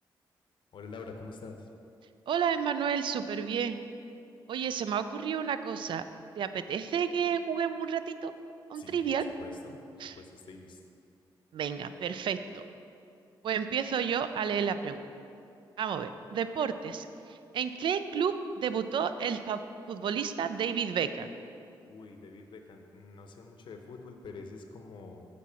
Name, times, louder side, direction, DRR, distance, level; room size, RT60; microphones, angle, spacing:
voice 1, 0.7-1.7 8.8-10.8 21.9-25.2, left 4 dB, 65° left, 4 dB, 0.7 m, -46 dB
voice 2, 2.3-3.8 4.5-6.0 6.4-8.3 8.7-9.3 10.0-10.2 11.5-12.6 13.4-15.0 15.8-19.6 19.9-21.3, right 7 dB, 65° right, 11 dB, 0.4 m, -31 dB
7.4 x 4.1 x 5.7 m, 2.6 s
cardioid pair, 65°, 9 cm